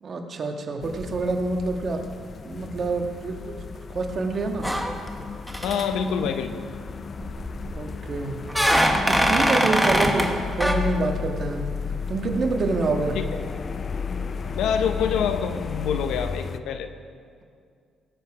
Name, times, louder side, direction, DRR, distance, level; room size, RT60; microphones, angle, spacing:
voice 1, 0.0-2.0 2.4-3.6 3.9-4.7 7.2-7.3 7.7-8.4 9.1-11.6 12.1-13.2, right 3 dB, 50° right, 4 dB, 1.5 m, -27 dB
sound 1, 0.8-16.6, left 6 dB, 45° left, 0.5 m, -33 dB
sound 2, 4.6-5.2 5.5-5.8 7.2-7.8 8.5-10.3 10.6-10.7, equal, ahead, 1.4 m, -22 dB
voice 2, 5.6-6.6 13.1-13.2 14.5-16.9, left 7 dB, 85° left, 8 dB, 0.9 m, -26 dB
17.5 x 8.3 x 4.9 m, 2.2 s
cardioid pair, 90°, 0 cm